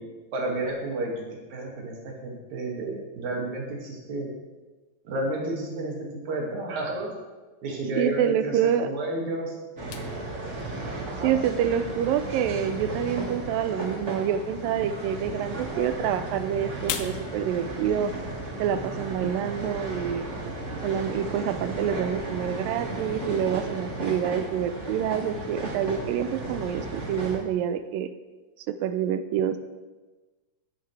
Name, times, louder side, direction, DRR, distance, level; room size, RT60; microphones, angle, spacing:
voice 1, 0.3-1.2 1.5-4.3 5.0-7.1 7.6-9.6 11.1-11.3, right 1 dB, 55° right, -1 dB, 3.3 m, -31 dB
voice 2, 8.0-8.9 11.2-18.1 18.6-20.3 20.8-28.1 28.6-29.6, right 9 dB, 80° right, 11 dB, 2.1 m, -27 dB
sound 1, 9.8-27.4, right 2 dB, 35° right, 1.2 m, -35 dB
sound 2, 9.9-20.7, left 10 dB, 75° left, 1.8 m, -44 dB
14.0 x 11.0 x 3.3 m, 1.2 s
omnidirectional pair, 4.2 m